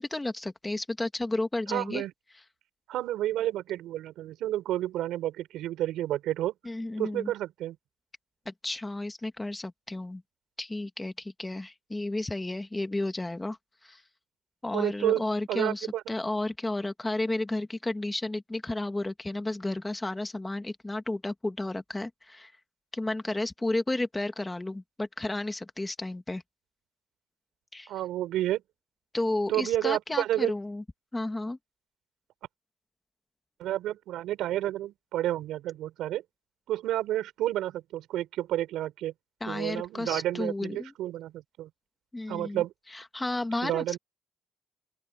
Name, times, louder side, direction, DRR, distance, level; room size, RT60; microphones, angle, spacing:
voice 1, 0.0-2.0 6.6-7.3 8.5-10.2 10.6-13.6 13.8-14.0 14.6-22.5 22.9-26.4 27.7-27.9 29.1-30.8 31.1-31.6 39.4-40.9 42.1-42.6 42.9-44.0, left 2 dB, 15° left, 2.1 m, -32 dB
voice 2, 1.7-2.1 2.9-6.5 7.0-7.8 14.7-16.0 27.9-28.6 29.5-30.5 33.6-36.2 36.7-39.1 39.5-41.7 42.3-42.7 43.6-44.0, right 13 dB, 85° right, 6.1 m, -30 dB
open air
cardioid pair, 90°, 0 cm